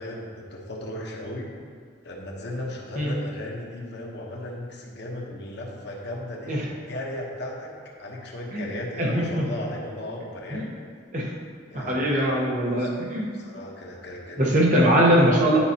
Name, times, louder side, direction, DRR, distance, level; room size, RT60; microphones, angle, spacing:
voice 1, 0.0-1.5 2.0-7.7 8.0-10.8 11.7-12.3 12.8-12.9 13.3-14.8, left 1 dB, 60° left, -2 dB, 1.1 m, -36 dB
voice 2, 9.0-9.5 10.5-10.6 11.1-11.3 11.7-13.3 14.4-15.6, equal, 45° right, -3 dB, 1.2 m, -21 dB
10.0 x 5.0 x 2.9 m, 2.1 s
head